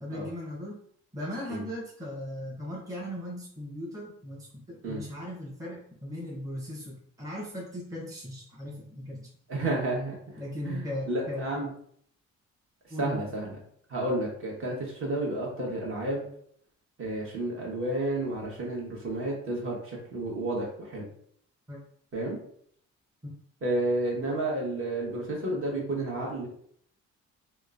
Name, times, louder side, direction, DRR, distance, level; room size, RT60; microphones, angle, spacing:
voice 1, 0.0-0.8 1.1-9.3 10.4-11.7 12.9-13.2 21.7-21.8 23.2-23.3, left 1 dB, 10° right, -4 dB, 0.8 m, -38 dB
voice 2, 9.5-10.2 10.6-11.7 13.0-13.5 13.9-16.2 17.0-21.0 22.1-22.4 23.6-26.5, right 1 dB, 45° right, -2 dB, 1.1 m, -31 dB
2.9 x 2.1 x 2.4 m, 0.64 s
cardioid pair, 90°, 30 cm